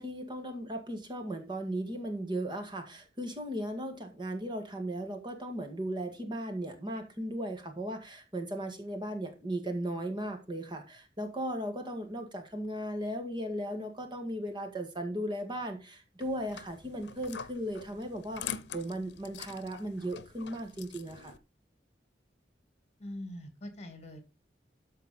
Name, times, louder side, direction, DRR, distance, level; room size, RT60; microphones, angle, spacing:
voice 1, 0.0-21.3, right 1 dB, 25° right, 1.9 m, -37 dB
sound 1, 16.2-21.4, left 8 dB, 80° left, 0.8 m, -44 dB
voice 2, 23.0-24.2, left 1 dB, 40° left, 2.6 m, -43 dB
13.5 x 4.6 x 5.3 m
head